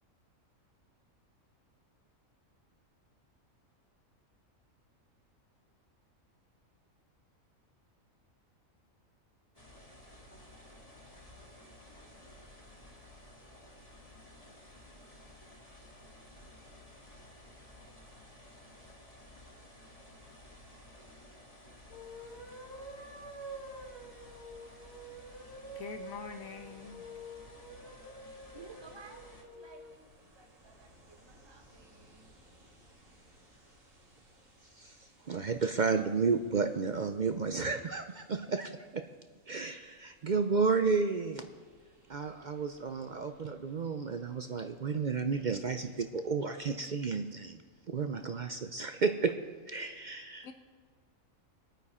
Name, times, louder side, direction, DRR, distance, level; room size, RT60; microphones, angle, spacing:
sound 1, 9.5-29.4, left 1 dB, 25° left, 2.1 m, -54 dB
sound 2, 21.8-30.0, right 1 dB, 50° left, 2.5 m, -48 dB
voice 1, 25.7-27.0 50.4-50.5, left 6 dB, 85° left, 6 dB, 1.5 m, -44 dB
Ocean, 28.0-45.2, right 1 dB, 70° right, 2.9 m, -64 dB
voice 2, 28.5-32.4, right 4 dB, 20° right, 4 dB, 1.1 m, -55 dB
voice 3, 34.6-39.1 39.5-41.5 42.1-49.4 49.6-50.5, right 4 dB, 55° right, 7 dB, 0.5 m, -32 dB
21.0 x 9.2 x 4.3 m, 1.5 s
omnidirectional pair, 1.4 m